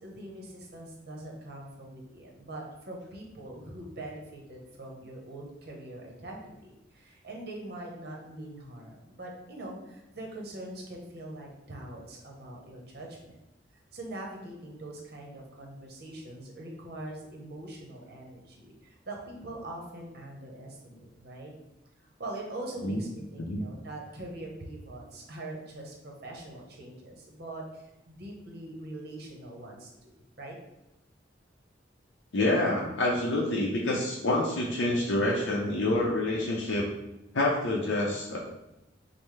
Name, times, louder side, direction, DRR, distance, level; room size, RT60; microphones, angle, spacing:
voice 1, 0.0-13.4 13.9-21.5 22.2-30.6, right 1 dB, 60° right, 0 dB, 0.9 m, -43 dB
voice 2, 32.3-36.8 37.3-38.4, left 1 dB, 75° left, -3 dB, 0.6 m, -27 dB
5.4 x 2.1 x 3.2 m, 0.93 s
head